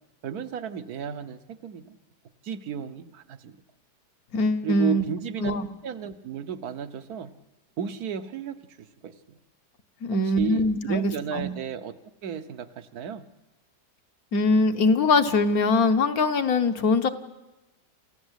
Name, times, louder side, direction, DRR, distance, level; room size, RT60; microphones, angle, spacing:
voice 1, 0.2-2.0 2.4-3.6 4.6-5.5 5.8-7.3 7.8-9.4 10.2-12.0 12.2-13.3, right 8 dB, 65° right, 11 dB, 1.5 m, -34 dB
voice 2, 4.3-5.0 5.4-5.7 10.0-11.5 14.3-17.1, left 2 dB, 60° left, 8 dB, 1.5 m, -22 dB
27.5 x 15.5 x 8.1 m, 1.0 s
omnidirectional pair, 1.8 m